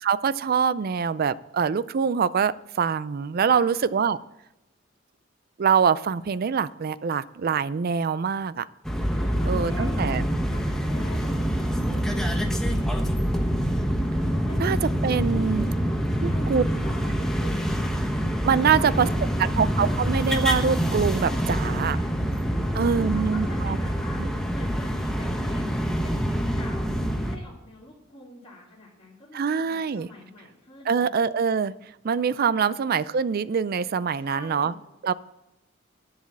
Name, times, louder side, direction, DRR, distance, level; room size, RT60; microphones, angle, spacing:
voice 1, 0.0-4.2 5.6-8.7 9.5-10.2 14.6-14.8 15.0-15.7 16.2-16.6 18.4-19.1 19.6-22.0 22.7-23.8 24.2-24.3 29.3-30.1 30.9-31.8 32.0-34.7 35.0-35.1, right 6 dB, 50° right, 17 dB, 0.4 m, -24 dB
sound 1, 8.8-27.4, equal, 5° left, 1.0 m, -26 dB
voice 2, 9.1-13.4 14.3-14.8 15.2-17.8 18.5-19.5 21.6-22.1 22.4-25.7 26.0-31.1 34.1-34.8, left 1 dB, 30° left, -9 dB, 2.9 m, -44 dB
10.5 x 7.2 x 7.4 m, 0.94 s
head